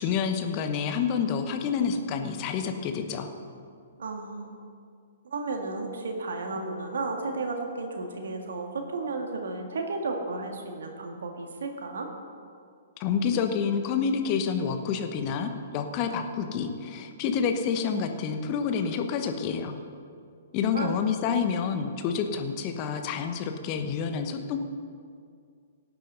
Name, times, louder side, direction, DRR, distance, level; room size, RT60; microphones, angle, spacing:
voice 1, 0.0-3.3 13.0-19.8 20.5-24.6, left 6 dB, 35° left, 6 dB, 1.1 m, -28 dB
voice 2, 4.0-4.5 5.2-12.1 20.7-21.0, right 3 dB, 60° right, 3 dB, 1.9 m, -33 dB
17.5 x 9.1 x 4.0 m, 2.2 s
figure-of-eight pair, 115°, 0 cm